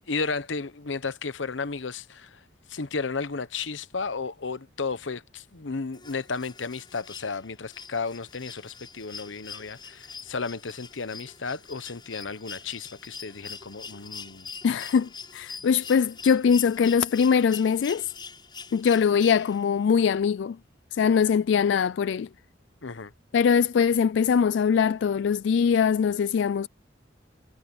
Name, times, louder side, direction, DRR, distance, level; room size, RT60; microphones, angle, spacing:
voice 1, 0.1-2.4 2.7-14.5 22.8-23.1, left 4 dB, 90° left, 1.0 m, -33 dB
sound 1, 5.9-19.9 21.3-21.4, left 5 dB, 25° left, 7.9 m, -44 dB
voice 2, 14.6-18.1 18.7-20.6 20.9-22.3 23.3-26.7, left 6 dB, 70° left, 0.3 m, -22 dB
head